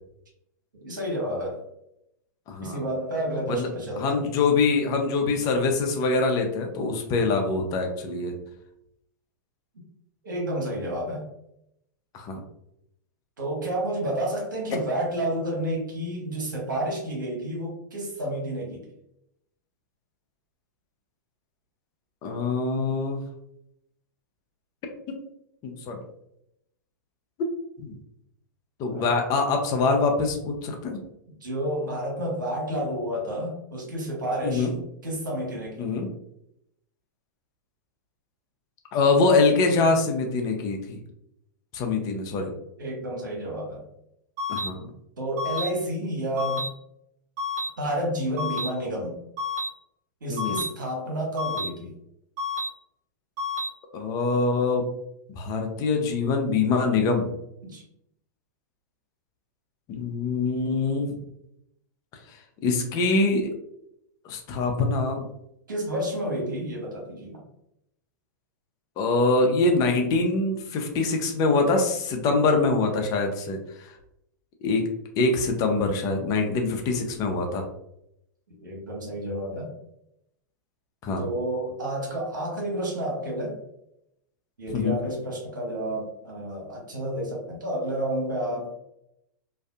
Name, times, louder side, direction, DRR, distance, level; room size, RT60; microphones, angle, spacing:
voice 1, 0.7-1.6 2.6-4.2 5.3-5.4 10.2-11.3 13.4-18.8 28.9-29.1 31.4-34.7 35.0-36.0 42.8-43.8 45.2-46.7 47.8-49.2 50.2-51.9 57.6-57.8 65.7-67.4 78.5-79.7 81.2-83.6 84.6-88.8, right 1 dB, 80° right, -1 dB, 1.1 m, -30 dB
voice 2, 2.5-2.8 3.5-3.7 4.0-8.3 12.1-12.4 22.2-23.2 25.1-25.2 25.6-26.0 27.8-27.9 28.8-31.0 34.4-34.7 35.8-36.1 38.9-41.0 41.7-42.5 44.5-44.8 50.3-50.6 53.9-54.9 55.3-57.3 59.9-61.1 62.6-63.5 64.2-65.3 69.0-73.9 74.6-74.9 75.2-77.7 81.0-81.3 84.7-85.0, left 3 dB, 35° left, 4 dB, 0.6 m, -24 dB
sound 1, 44.4-44.7 45.4-45.7 46.4-46.7 47.4-47.7 48.4-48.7 49.4-49.7 50.4-50.7 51.4-51.7 52.4-52.7 53.4-53.7, left 3 dB, 65° right, 1.0 m, -29 dB
2.6 x 2.3 x 2.3 m, 0.79 s
hypercardioid pair, 105°, 10 cm